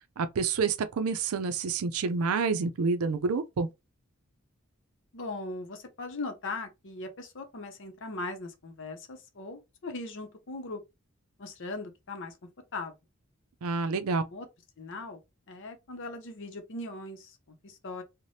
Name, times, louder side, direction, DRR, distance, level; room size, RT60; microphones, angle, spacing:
voice 1, 0.2-3.7 13.6-14.2, right 4 dB, 85° right, 0.5 m, -28 dB
voice 2, 5.1-10.8 11.4-12.4 12.7-13.0 14.2-14.5 14.8-15.2 15.5-18.0, left 2 dB, 60° left, 0.7 m, -39 dB
3.2 x 2.1 x 2.7 m
head